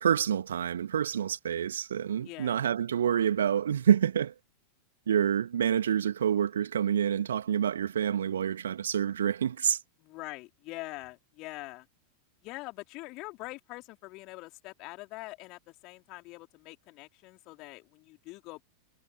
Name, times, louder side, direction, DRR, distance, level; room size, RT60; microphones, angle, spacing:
voice 1, 0.0-4.3 5.1-9.8, right 9 dB, 65° right, 2.5 m, -27 dB
voice 2, 2.2-2.6 10.0-11.9 12.4-18.6, left 22 dB, 40° left, 4.0 m, -44 dB
figure-of-eight pair, 90°, 0 cm